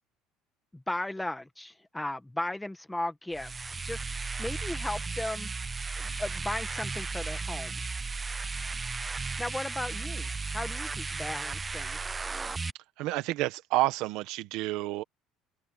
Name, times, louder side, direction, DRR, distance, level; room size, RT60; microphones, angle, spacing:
voice 1, 0.7-4.0 4.4-5.5 6.0-7.8 9.4-12.0, left 1 dB, 5° left, 1.6 m, -36 dB
sound 1, 3.3-12.7, right 4 dB, 15° right, 0.3 m, -35 dB
voice 2, 13.0-15.0, right 17 dB, 65° right, 1.3 m, -29 dB
open air
cardioid pair, 165°, 0 cm